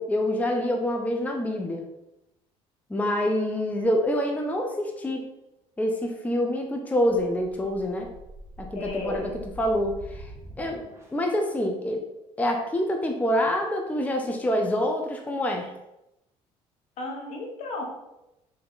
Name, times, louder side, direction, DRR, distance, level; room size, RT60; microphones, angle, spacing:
voice 1, 0.0-1.8 2.9-5.2 5.8-8.1 8.6-9.3 9.6-10.3 10.6-10.8 11.1-12.0 12.4-15.7, left 1 dB, 10° left, 2 dB, 0.5 m, -26 dB
sound 1, 7.0-11.4, equal, 20° right, 1.1 m, -45 dB
voice 2, 8.7-9.3 17.0-17.8, left 2 dB, 65° left, 1 dB, 1.1 m, -33 dB
3.6 x 3.4 x 3.9 m, 0.91 s
cardioid pair, 110°, 13 cm